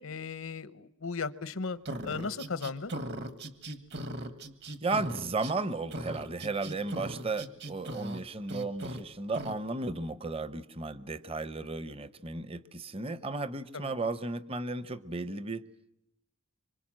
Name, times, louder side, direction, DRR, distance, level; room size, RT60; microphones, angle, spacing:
voice 1, 0.0-1.8 2.0-2.9 13.7-13.9, left 4 dB, 80° left, 15 dB, 1.0 m, -36 dB
sound 1, 1.9-5.6 5.9-8.2 8.5-9.0 9.3-9.6, right 1 dB, 55° right, 1.7 m, -39 dB
voice 2, 4.8-15.6, right 3 dB, 25° right, 14 dB, 0.9 m, -34 dB
25.5 x 25.5 x 7.6 m, 0.82 s
head